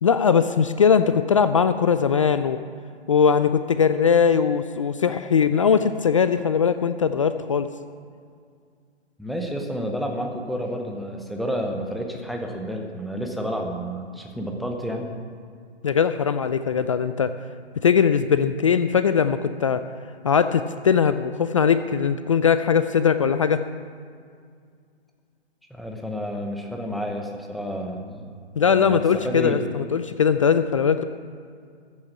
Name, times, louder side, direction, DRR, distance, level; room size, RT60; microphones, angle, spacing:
voice 1, 0.0-2.6 3.1-7.7 15.8-17.3 17.8-19.8 20.2-23.6 28.6-31.0, left 7 dB, 30° left, 11 dB, 0.4 m, -20 dB
voice 2, 9.2-15.1 25.7-28.3 28.7-29.6, equal, ahead, 2 dB, 0.8 m, -30 dB
14.5 x 8.7 x 7.5 m, 2.2 s
figure-of-eight pair, 135°, 34 cm